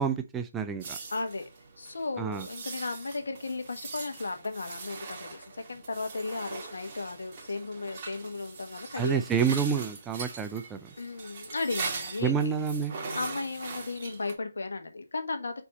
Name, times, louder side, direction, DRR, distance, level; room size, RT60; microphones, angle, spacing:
voice 1, 0.0-1.0 2.2-2.4 9.0-10.8 12.2-12.9, right 6 dB, 10° right, 0.5 m, -28 dB
sound 1, 0.8-14.3, right 4 dB, 30° right, 1.8 m, -41 dB
voice 2, 1.1-1.4 1.8-9.2 11.0-12.5 13.0-15.6, left 3 dB, 75° left, 1.4 m, -35 dB
4.6 x 4.1 x 5.1 m
figure-of-eight pair, 155°, 0 cm